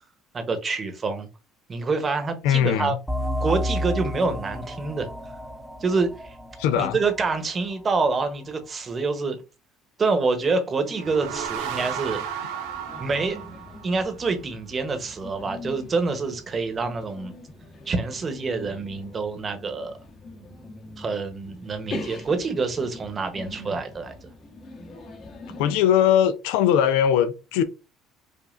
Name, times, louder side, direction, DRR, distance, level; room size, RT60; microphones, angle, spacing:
voice 1, 0.3-1.3 1.7-2.9 3.4-5.1 5.8-6.3 6.8-9.4 10.0-12.2 13.0-13.4 13.8-17.3 17.9-20.0 21.0-24.1, right 4 dB, 35° right, 1.0 m, -26 dB
voice 2, 2.4-3.0 6.6-7.0 25.6-27.6, left 9 dB, 80° left, 0.4 m, -20 dB
sound 1, 3.1-8.3, equal, 5° right, 0.7 m, -31 dB
sound 2, 10.8-14.3, right 8 dB, 85° right, 0.6 m, -33 dB
sound 3, 11.0-25.8, left 2 dB, 45° left, 1.2 m, -42 dB
5.1 x 2.4 x 2.5 m
supercardioid pair, 90°, 0 cm